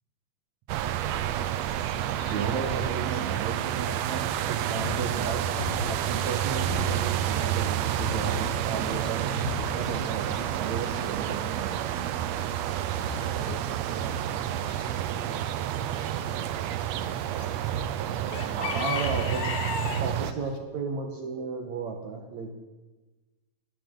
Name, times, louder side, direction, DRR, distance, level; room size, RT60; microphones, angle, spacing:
sound 1, 0.7-20.3, right 11 dB, 80° right, 1.5 m, -29 dB
Chicken rooster / Bird, 1.4-20.6, left 6 dB, 70° left, 2.9 m, -43 dB
voice 1, 2.3-5.5 5.9-12.1 18.5-19.4 20.0-22.5, right 5 dB, 60° right, 3 dB, 2.5 m, -34 dB
sound 2, 4.8-11.7 12.2-12.3 12.9-13.6, left 11 dB, 85° left, 2.3 m, -40 dB
voice 2, 13.3-15.9 18.1-19.7, right 5 dB, 35° right, 2 dB, 2.3 m, -46 dB
25.5 x 13.5 x 3.9 m, 1.2 s
omnidirectional pair, 3.8 m